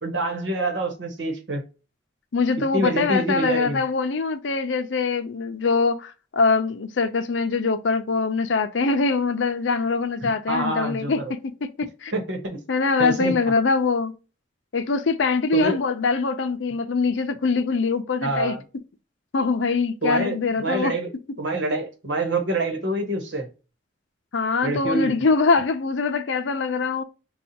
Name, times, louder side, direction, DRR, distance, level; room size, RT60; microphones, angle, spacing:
voice 1, 0.0-1.6 2.7-3.8 10.2-11.3 12.1-12.6 13.0-13.3 15.5-15.8 18.2-18.6 20.0-21.1 21.4-23.5 24.6-25.1, right 2 dB, 80° right, 1.2 m, -26 dB
voice 2, 2.3-11.5 11.8-12.1 12.7-14.1 14.7-18.6 19.3-20.9 24.3-27.0, left 4 dB, 90° left, 0.6 m, -23 dB
5.3 x 2.4 x 2.8 m
head